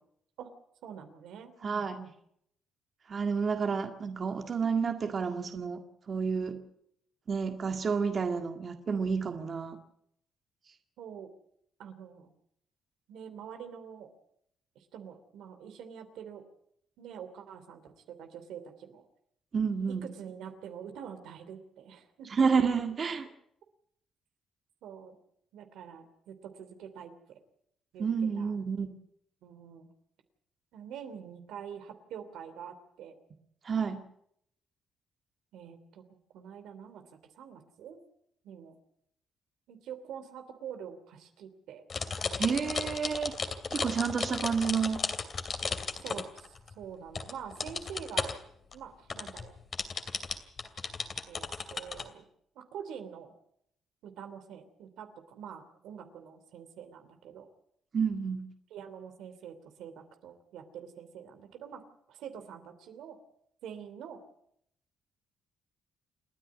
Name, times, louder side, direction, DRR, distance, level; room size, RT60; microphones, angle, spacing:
voice 1, 0.8-2.1 11.0-11.3 11.8-12.3 13.1-14.1 14.7-16.4 17.0-19.0 19.9-22.3 24.8-25.2 25.5-27.4 27.9-28.1 28.3-28.5 29.4-29.9 30.7-33.1 35.5-37.0 37.3-38.0 38.4-38.7 39.7-41.8 46.0-48.3 48.7-49.5 51.3-52.3 52.5-53.3 54.0-57.5 58.7-61.8 62.1-63.2 63.6-64.2, right 8 dB, 85° right, 7 dB, 2.9 m, -46 dB
voice 2, 1.6-2.0 3.1-6.6 7.3-9.8 19.5-20.1 22.3-23.3 28.0-28.9 33.6-34.0 42.4-43.3 43.7-45.0 57.9-58.5, right 5 dB, 45° right, 5 dB, 1.9 m, -30 dB
sound 1, 41.9-46.8 47.2-48.4 48.7-48.8 49.1-52.0, left 5 dB, 45° left, 2.7 m, -34 dB
28.5 x 10.0 x 9.6 m, 0.73 s
cardioid pair, 90°, 0 cm